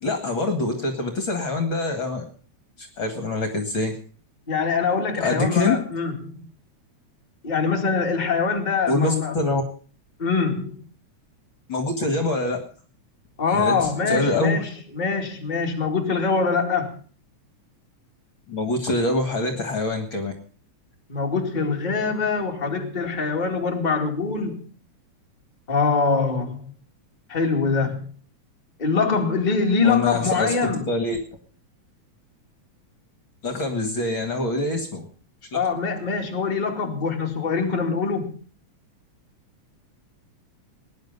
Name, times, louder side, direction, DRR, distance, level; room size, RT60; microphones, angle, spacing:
voice 1, 0.0-2.2 2.8-3.9 5.1-5.8 8.9-9.6 11.7-12.6 13.5-14.6 18.5-20.3 29.8-31.2 33.4-35.0 35.5-35.6, left 2 dB, 45° left, 6 dB, 2.4 m, -25 dB
voice 2, 4.5-6.5 7.4-9.4 10.2-10.8 13.4-17.0 21.1-24.7 25.7-26.7 27.3-28.1 28.8-30.8 35.5-38.4, left 4 dB, 15° left, 1 dB, 2.2 m, -24 dB
19.5 x 10.5 x 5.4 m, 0.41 s
omnidirectional pair, 3.4 m